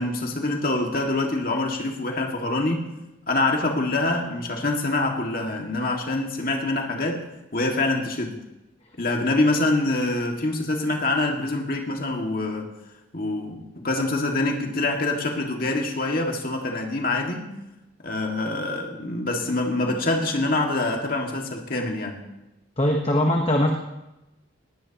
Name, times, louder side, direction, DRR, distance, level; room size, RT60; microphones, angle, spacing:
voice 1, 0.0-2.9 3.3-7.2 7.5-8.4 9.0-12.7 13.1-17.5 18.0-22.2, left 2 dB, 45° left, 2 dB, 2.0 m, -25 dB
voice 2, 22.8-23.7, left 1 dB, 25° left, 1 dB, 1.1 m, -21 dB
19.5 x 17.5 x 3.0 m, 0.96 s
head